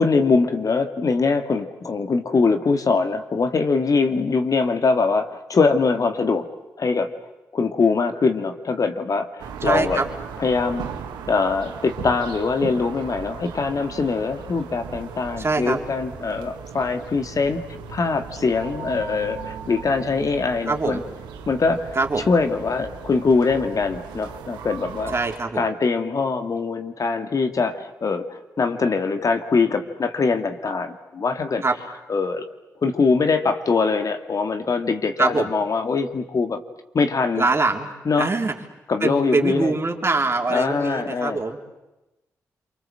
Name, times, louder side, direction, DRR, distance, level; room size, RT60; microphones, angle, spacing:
voice 1, 0.0-6.4 6.8-7.1 7.5-10.0 10.4-10.9 11.3-17.6 17.9-21.0 21.5-22.0 22.3-25.1 25.6-31.6 32.1-32.4 32.8-36.6 36.9-37.5 38.1-38.3 38.9-39.7 40.5-41.4, left 4 dB, 55° left, 7 dB, 2.0 m, -22 dB
sound 1, 9.4-25.4, right 7 dB, 85° right, 1.7 m, -37 dB
voice 2, 9.6-10.1 15.4-15.8 20.7-21.0 22.0-22.3 25.1-25.7 31.6-31.7 35.2-35.5 37.4-37.9 38.2-38.5 39.0-41.6, right 3 dB, 35° right, 3 dB, 3.6 m, -23 dB
27.5 x 24.0 x 7.7 m, 1.0 s
supercardioid pair, 45°, 7 cm